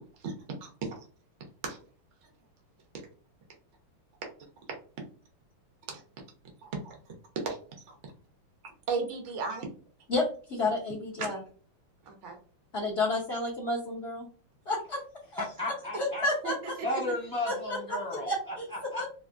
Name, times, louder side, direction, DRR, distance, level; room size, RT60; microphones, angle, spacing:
voice 1, 0.6-1.0 1.7-1.8 5.9-6.0 6.6-7.6 7.9-8.0 8.9-9.7 11.2-11.4 12.0-12.4 16.4-16.5, right 4 dB, 85° right, 2 dB, 0.6 m, -35 dB
voice 2, 10.1-11.4 12.7-14.3 14.7-15.0 15.3-15.4 16.0-16.5 17.5-17.8 18.1-18.6 18.9-19.0, left 2 dB, 75° left, -4 dB, 0.6 m, -30 dB
voice 3, 15.3-16.2 16.8-19.0, left 1 dB, 25° right, -7 dB, 0.4 m, -34 dB
3.5 x 2.5 x 2.4 m, 0.39 s
omnidirectional pair, 2.4 m